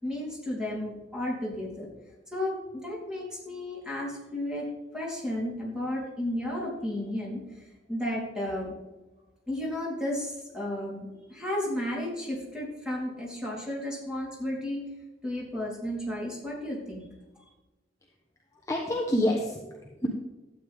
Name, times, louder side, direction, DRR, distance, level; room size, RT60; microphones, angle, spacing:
voice 1, 0.0-1.9 2.3-4.7 4.9-8.7 9.5-14.8 15.2-17.1, left 1 dB, 5° right, -5 dB, 3.7 m, -33 dB
voice 2, 18.6-20.1, left 1 dB, 15° left, 0 dB, 1.0 m, -28 dB
12.5 x 8.9 x 3.6 m, 1.1 s
head